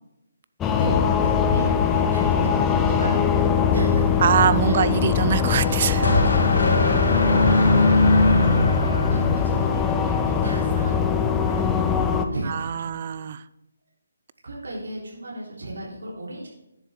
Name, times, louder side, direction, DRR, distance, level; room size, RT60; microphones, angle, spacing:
sound 1, 0.6-12.3, left 7 dB, 15° left, 0.6 m, -22 dB
voice 1, 0.8-5.1 5.9-8.4 8.8-12.0 12.3-13.0 14.4-16.5, right 2 dB, 75° right, -4 dB, 3.6 m, -34 dB
voice 2, 4.2-6.0 12.5-13.4, right 8 dB, 40° right, 16 dB, 0.4 m, -23 dB
sound 2, 5.4-9.9, left 2 dB, 75° left, 2.8 m, -21 dB
10.5 x 7.2 x 3.7 m, 0.92 s
figure-of-eight pair, 155°, 0 cm